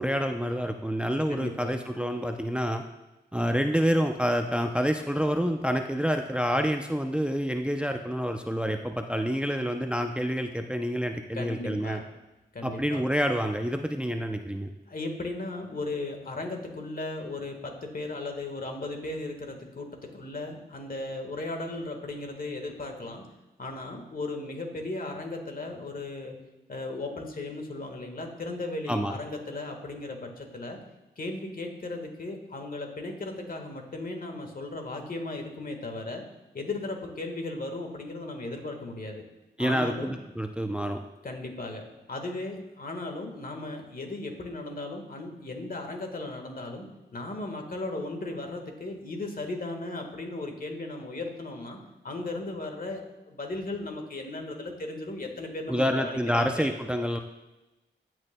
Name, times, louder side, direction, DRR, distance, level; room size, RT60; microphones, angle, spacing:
voice 1, 0.0-2.8 3.3-12.0 12.6-14.7 28.9-29.2 39.6-41.0 55.7-57.2, equal, 5° right, 5 dB, 0.5 m, -28 dB
voice 2, 1.3-1.8 11.3-12.0 12.5-13.0 14.9-23.2 23.6-26.3 26.7-30.8 31.2-36.2 36.5-39.2 39.6-40.1 41.2-46.9 47.1-51.8 52.0-56.7, left 2 dB, 50° left, 3 dB, 1.5 m, -36 dB
14.0 x 6.2 x 2.2 m, 1.0 s
cardioid pair, 55°, 19 cm